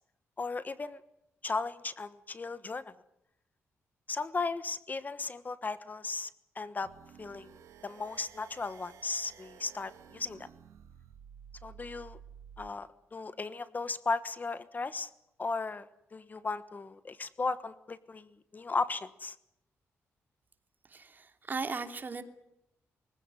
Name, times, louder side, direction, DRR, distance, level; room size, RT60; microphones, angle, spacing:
voice 1, 0.4-1.0 1.4-2.9 4.1-6.3 6.5-6.9 7.2-7.5 7.8-10.5 11.6-12.2 12.6-15.1 15.4-19.4, left 4 dB, 35° left, 14 dB, 1.2 m, -36 dB
sound 1, 6.8-12.7, right 8 dB, 85° right, 1.8 m, -53 dB
voice 2, 20.8-22.2, right 4 dB, 40° right, 7 dB, 2.8 m, -37 dB
24.0 x 16.0 x 9.8 m, 0.83 s
cardioid pair, 85°, 5 cm